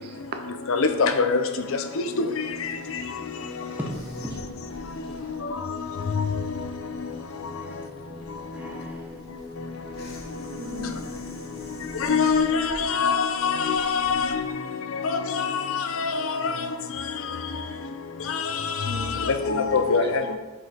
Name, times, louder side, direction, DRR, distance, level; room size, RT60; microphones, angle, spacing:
voice 1, 0.0-0.4 10.5-11.0 12.2-12.3 18.8-20.0 20.2-20.4, right 2 dB, 45° right, 6 dB, 0.6 m, -38 dB
voice 2, 0.7-1.4 2.2-2.3 6.2-6.3 12.0-14.4 15.1-16.5 18.3-18.4 19.2-20.2, left 5 dB, 65° left, 8 dB, 0.5 m, -23 dB
sound 1, 2.4-12.6, left 3 dB, 25° left, 1.0 m, -43 dB
voice 3, 3.6-5.5 7.6-7.8 8.5-9.3, equal, 5° right, -2 dB, 1.1 m, -40 dB
sound 2, 3.9-14.5, left 1 dB, 45° left, 1.3 m, -44 dB
6.5 x 5.4 x 4.4 m, 1.3 s
head